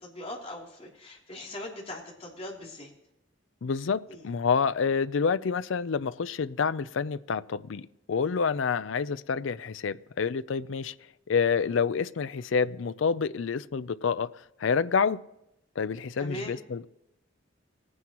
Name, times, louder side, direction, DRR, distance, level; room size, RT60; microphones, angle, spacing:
voice 1, 0.0-2.9 4.1-4.2 16.2-16.5, left 1 dB, 30° left, 3.0 m, -40 dB
voice 2, 3.6-10.9 11.3-14.3 14.6-15.2 15.8-16.9, left 5 dB, 80° left, 0.5 m, -28 dB
19.0 x 9.6 x 3.0 m
head